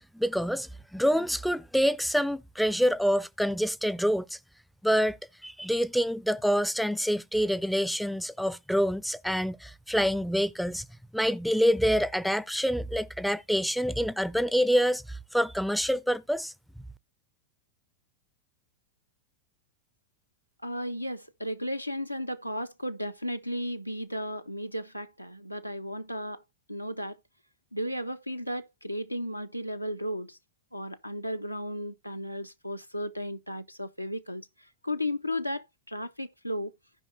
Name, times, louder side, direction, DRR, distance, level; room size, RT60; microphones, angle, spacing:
voice 1, 0.1-4.4 4.8-10.9 11.1-16.5, equal, ahead, 0.4 m, -27 dB
voice 2, 20.6-26.4 26.7-27.2 27.7-30.4 30.7-34.5 34.8-36.7, equal, 90° left, 0.5 m, -34 dB
15.5 x 5.2 x 2.7 m
figure-of-eight pair, 90°, 0 cm